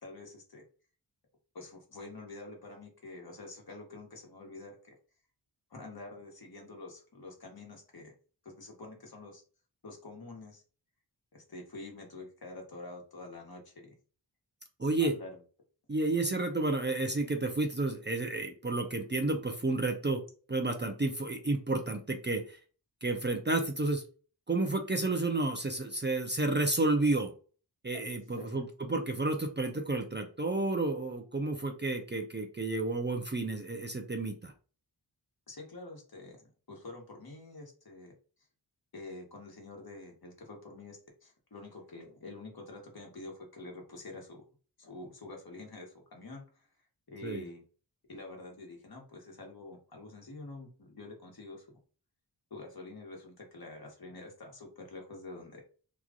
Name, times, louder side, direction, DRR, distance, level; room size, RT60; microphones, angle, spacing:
voice 1, 0.0-0.6 1.5-5.0 5.7-8.1 8.4-9.4 9.8-10.6 11.3-13.9 15.0-15.4 27.9-28.0 28.3-28.6 35.5-38.1 38.9-44.4 44.8-46.7 47.1-47.6 48.1-51.7 52.5-55.6, left 2 dB, 60° left, 1 dB, 1.3 m, -47 dB
voice 2, 14.8-15.1 15.9-20.2 20.5-22.6 23.0-24.0 24.5-27.3 27.8-34.5 47.2-47.4, right 2 dB, 25° right, 4 dB, 0.5 m, -31 dB
3.0 x 2.4 x 3.6 m, 0.38 s
wide cardioid pair, 85°, 42 cm